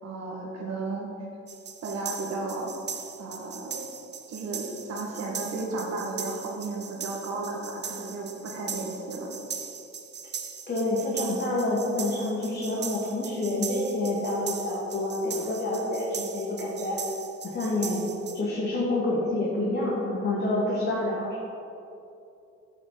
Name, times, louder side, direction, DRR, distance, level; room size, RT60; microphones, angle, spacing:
voice 1, 0.0-1.1 1.8-2.7 3.2-3.9 4.3-9.3, right 3 dB, 60° right, -1 dB, 1.8 m, -34 dB
sound 1, 1.5-18.4, right 6 dB, 35° right, 0.7 m, -39 dB
voice 2, 10.7-17.0 17.4-21.3, left 1 dB, 35° left, -6 dB, 1.7 m, -28 dB
8.1 x 4.4 x 5.7 m, 2.7 s
cardioid pair, 90°, 30 cm